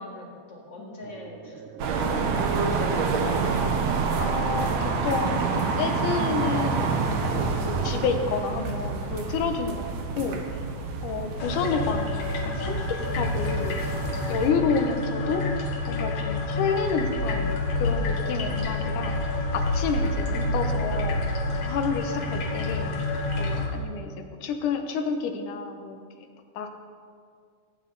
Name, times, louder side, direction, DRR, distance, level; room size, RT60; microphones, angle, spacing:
voice 1, 0.0-1.6 2.0-2.7, left 1 dB, 40° left, -3 dB, 2.3 m, -43 dB
sound 1, 1.0-9.8, right 4 dB, 85° right, 2.4 m, -42 dB
sound 2, 1.8-14.5, right 4 dB, 65° right, 2.0 m, -28 dB
voice 2, 3.3-3.7 4.2-6.9 7.6-10.7 11.0-13.8 14.3-15.5 15.9-19.2 19.5-21.2 21.6-22.9 23.4-26.3 26.6-26.7, left 5 dB, 75° left, 6 dB, 2.4 m, -30 dB
sound 3, 11.4-23.7, left 2 dB, 60° left, 2.5 m, -28 dB
18.5 x 8.9 x 3.9 m, 2.2 s
omnidirectional pair, 3.7 m